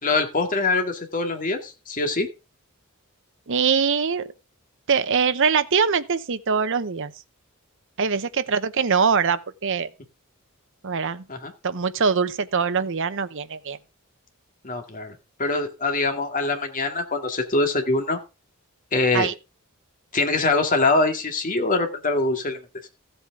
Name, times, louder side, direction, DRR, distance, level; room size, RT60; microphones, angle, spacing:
voice 1, 0.0-2.3 11.3-11.5 14.6-18.2 18.9-19.3 20.1-22.6, left 3 dB, 40° left, 2.0 m, -23 dB
voice 2, 3.5-4.3 4.9-7.1 8.0-9.9 10.8-11.3 11.6-13.8 19.1-19.3, right 6 dB, 60° right, 0.8 m, -23 dB
15.0 x 8.0 x 3.7 m
head